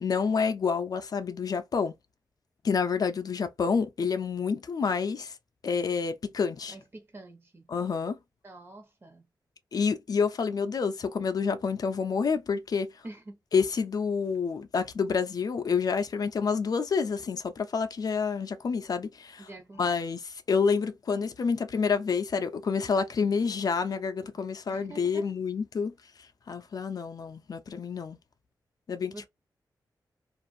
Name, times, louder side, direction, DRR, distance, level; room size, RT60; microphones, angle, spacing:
voice 1, 0.0-1.9 2.6-5.4 5.6-6.8 7.7-8.2 9.7-12.9 13.5-19.5 19.8-25.9 26.5-28.2 28.9-29.3, left 5 dB, 55° left, 0.4 m, -28 dB
voice 2, 6.7-7.7 8.4-9.3 13.0-13.4 19.4-20.0 24.7-25.3 29.1-29.3, right 2 dB, 30° right, 0.9 m, -46 dB
2.5 x 2.4 x 2.5 m
cardioid pair, 85°, 8 cm